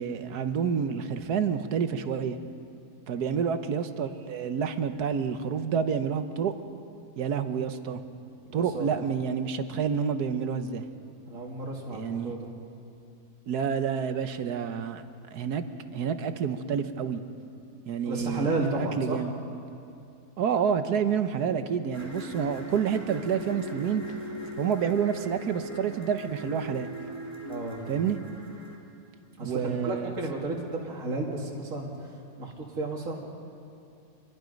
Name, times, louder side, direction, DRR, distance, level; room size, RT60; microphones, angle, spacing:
voice 1, 0.0-2.4 3.1-6.5 7.2-8.0 8.5-10.8 11.9-12.3 13.5-15.0 15.3-15.6 15.9-17.2 17.9-19.3 20.4-24.0 24.6-26.9 27.9-28.2 29.4-30.1, right 7 dB, 80° right, 9 dB, 1.5 m, -28 dB
voice 2, 8.5-9.0 11.3-12.5 18.0-19.2 27.4-28.1 29.4-32.1 32.4-33.2, right 2 dB, 55° right, -2 dB, 2.6 m, -33 dB
sound 1, 21.9-28.7, left 1 dB, 10° left, 2.4 m, -40 dB
26.5 x 20.5 x 5.3 m, 2.6 s
omnidirectional pair, 1.7 m